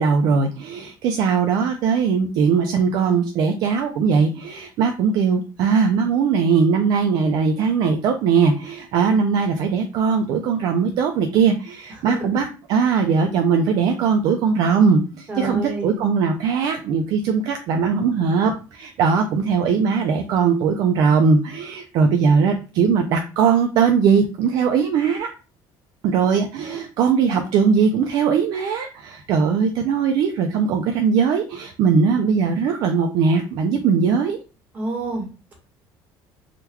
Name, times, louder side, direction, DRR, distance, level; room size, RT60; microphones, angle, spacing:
voice 1, 0.0-25.3 26.0-34.4, right 5 dB, 50° right, 5 dB, 0.4 m, -20 dB
voice 2, 15.3-16.0 26.6-26.8 34.7-35.3, right 2 dB, 20° right, -1 dB, 1.2 m, -28 dB
3.6 x 2.2 x 2.9 m, 0.32 s
cardioid pair, 175°, 9 cm